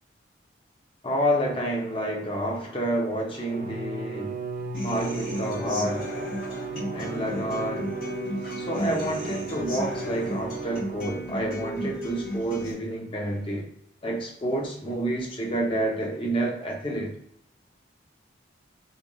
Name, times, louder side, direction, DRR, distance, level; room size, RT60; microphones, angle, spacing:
voice 1, 1.0-4.4 4.8-6.1 6.9-7.9 8.6-13.7 14.0-17.1, right 1 dB, 30° left, 0.6 m, -29 dB
Bowed string instrument, 3.3-11.6, right 5 dB, 45° right, 0.4 m, -36 dB
Human voice / Acoustic guitar, 4.7-12.7, left 1 dB, 45° left, 1.5 m, -34 dB
3.3 x 2.5 x 2.2 m
head